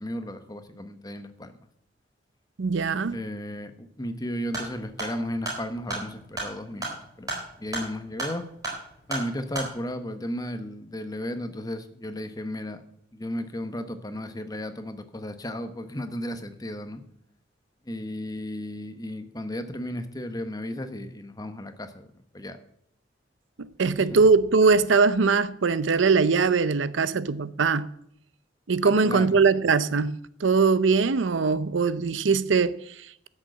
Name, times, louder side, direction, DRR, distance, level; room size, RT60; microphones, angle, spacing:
voice 1, 0.0-1.5 3.1-8.4 9.1-12.8 13.1-17.0 17.8-22.1 22.3-22.6 23.8-24.2 28.8-29.3, left 1 dB, 20° left, 1.0 m, -34 dB
voice 2, 2.6-3.2 23.6-27.9 28.7-33.3, right 4 dB, 90° right, 0.6 m, -22 dB
sound 1, 4.4-9.7, right 2 dB, 20° right, 4.2 m, -35 dB
12.5 x 6.6 x 7.6 m
head